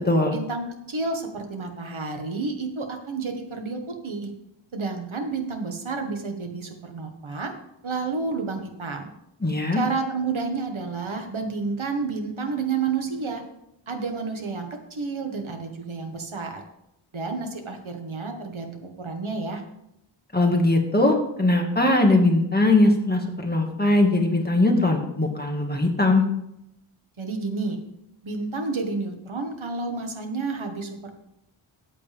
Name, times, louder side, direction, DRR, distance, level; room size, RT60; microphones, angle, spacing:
voice 1, 0.3-4.3 4.7-7.5 7.8-9.1 9.7-13.4 13.9-16.6 17.1-19.6 27.2-27.8 28.2-31.1, right 4 dB, 75° right, 4 dB, 1.7 m, -30 dB
voice 2, 9.4-9.8 20.3-26.2, left 2 dB, 20° left, 2 dB, 2.0 m, -20 dB
13.5 x 8.6 x 3.6 m, 0.81 s
wide cardioid pair, 80°, 48 cm